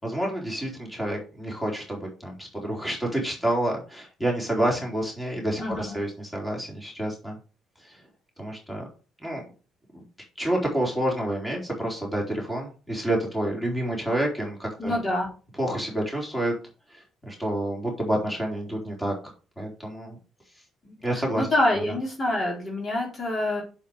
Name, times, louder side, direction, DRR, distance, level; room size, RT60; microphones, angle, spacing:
voice 1, 0.0-7.3 7.9-8.0 8.4-8.8 9.2-9.4 9.9-10.0 10.4-15.0 15.6-16.5 16.9-19.1 19.6-20.2 21.0-21.5, right 1 dB, 10° left, -1 dB, 4.2 m, -28 dB
voice 2, 5.6-6.0 14.8-15.3 20.8-23.6, left 1 dB, 35° left, -2 dB, 4.3 m, -26 dB
7.3 x 7.3 x 5.0 m, 0.36 s
supercardioid pair, 75°, 0 cm